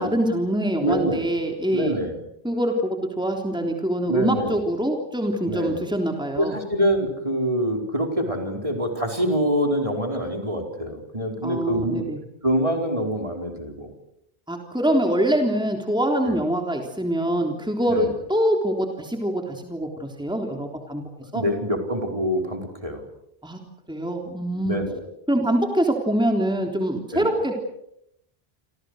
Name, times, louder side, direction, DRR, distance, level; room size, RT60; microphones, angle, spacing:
voice 1, 0.0-2.0 2.4-6.5 11.4-12.2 14.5-21.0 21.3-21.4 23.4-24.8 25.3-27.5, right 1 dB, 5° right, 2 dB, 3.5 m, -24 dB
voice 2, 0.8-1.2 1.7-2.2 4.1-4.6 5.5-5.8 6.3-12.0 12.4-13.9 16.2-16.4 17.8-18.1 21.3-23.0 24.6-25.0 27.1-27.4, equal, 30° right, 3 dB, 4.8 m, -25 dB
29.5 x 26.0 x 6.5 m, 0.78 s
omnidirectional pair, 1.1 m